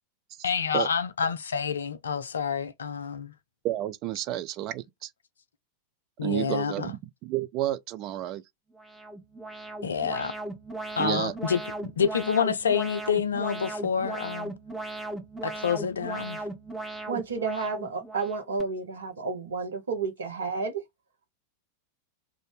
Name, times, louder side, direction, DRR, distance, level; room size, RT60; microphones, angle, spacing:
voice 1, 0.4-3.3 6.2-6.9 9.8-10.3 11.0-14.5 15.4-16.4, left 7 dB, 70° left, 0.4 m, -28 dB
voice 2, 3.6-5.1 6.2-8.4 11.0-11.3, right 13 dB, 40° right, 0.4 m, -30 dB
Alarm, 8.7-18.6, right 2 dB, ahead, 0.8 m, -37 dB
voice 3, 17.1-20.8, right 4 dB, 65° right, 0.8 m, -31 dB
2.6 x 2.5 x 3.3 m
figure-of-eight pair, 90°, 0 cm